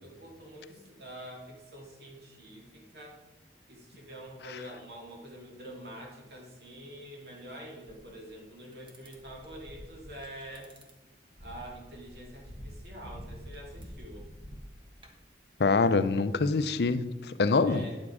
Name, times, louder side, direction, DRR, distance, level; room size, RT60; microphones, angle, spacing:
voice 1, 0.0-3.2 3.7-10.7 11.4-14.3 17.6-18.0, right 1 dB, 60° right, 2.4 m, -46 dB
sound 1, 7.9-8.1 8.7-10.9 11.4-15.3, equal, 30° right, 1.3 m, -47 dB
voice 2, 15.6-17.8, left 4 dB, 65° left, 0.5 m, -25 dB
10.5 x 7.4 x 4.8 m
head